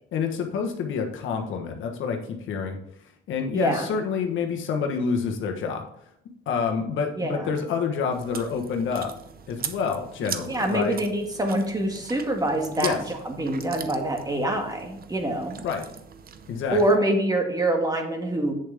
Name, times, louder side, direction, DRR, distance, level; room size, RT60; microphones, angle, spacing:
voice 1, 0.1-2.8 3.3-5.9 6.5-9.1 9.5-11.0 12.8-13.0 15.6-15.9 16.5-16.8, left 6 dB, 80° left, 3 dB, 1.3 m, -28 dB
voice 2, 3.5-3.9 7.2-7.5 10.5-15.6 16.7-18.5, right 1 dB, 20° right, 2 dB, 1.9 m, -25 dB
Chewing mastication, 8.1-17.0, right 7 dB, 50° right, 0.8 m, -40 dB
8.3 x 6.9 x 3.5 m, 0.73 s
cardioid pair, 90°, 20 cm